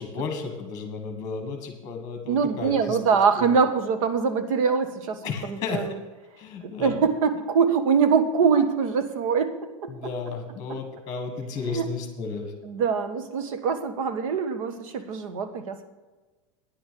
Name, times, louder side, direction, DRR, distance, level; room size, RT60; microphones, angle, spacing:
voice 1, 0.0-3.0 3.4-3.5 5.2-5.8 6.4-7.0 9.9-12.5, left 5 dB, 20° left, 5 dB, 1.6 m, -33 dB
voice 2, 2.3-6.0 6.6-10.1 11.7-11.9 12.6-15.8, right 6 dB, 75° right, 9 dB, 1.5 m, -24 dB
10.0 x 5.9 x 8.4 m, 1.2 s
supercardioid pair, 155°, 17 cm